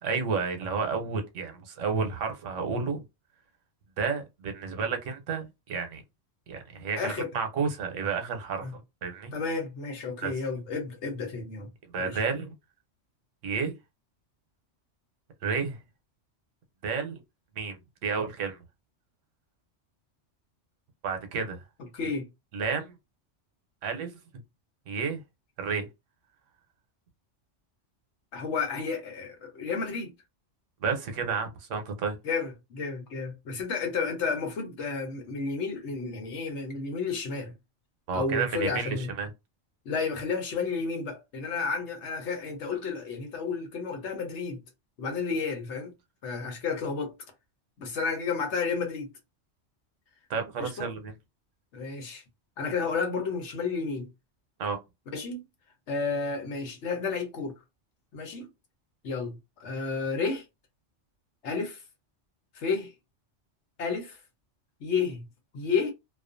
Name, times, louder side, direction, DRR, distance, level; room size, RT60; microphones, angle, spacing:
voice 1, 0.0-3.0 4.0-6.0 6.5-9.3 10.2-10.3 11.9-12.5 13.4-13.8 15.4-15.8 16.8-17.2 17.6-18.6 21.0-21.6 22.5-22.9 23.8-24.1 24.9-25.2 25.6-25.9 30.8-32.2 38.1-39.3 50.3-51.1 54.6-54.8, right 5 dB, 85° right, 1.0 m, -31 dB
voice 2, 7.0-7.3 8.6-8.8 9.3-11.7 12.0-12.2 21.9-22.3 28.3-30.1 32.2-37.5 38.1-39.1 39.8-44.6 45.0-45.9 46.2-47.2 47.8-49.1 50.6-50.9 51.7-52.2 52.6-54.1 55.1-55.4 55.9-57.5 58.1-58.5 59.0-60.4 61.4-61.8 62.5-62.9 63.8-64.2 64.8-65.2 65.5-65.9, left 4 dB, 70° left, 1.1 m, -31 dB
2.4 x 2.3 x 2.5 m
omnidirectional pair, 1.2 m